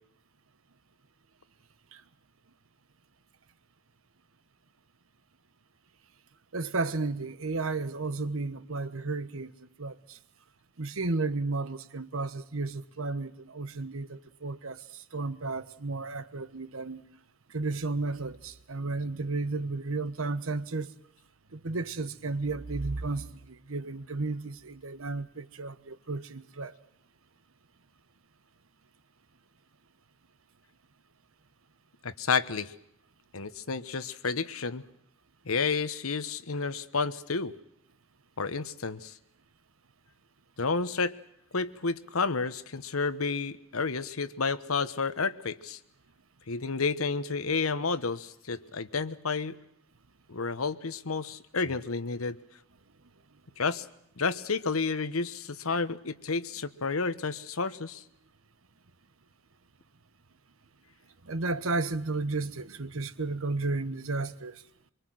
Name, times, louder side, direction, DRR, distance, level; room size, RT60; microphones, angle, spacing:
voice 1, 6.5-9.5 9.8-10.2 10.8-17.0 17.5-20.9 21.5-26.8 61.2-64.6, right 3 dB, 80° right, 1.2 m, -33 dB
voice 2, 32.0-32.7 33.3-34.8 35.5-37.5 38.4-39.1 40.6-41.1 41.5-45.8 46.5-49.6 50.3-52.4 53.6-53.8 54.2-58.0, left 4 dB, 90° left, 1.2 m, -30 dB
24.5 x 24.0 x 7.7 m
head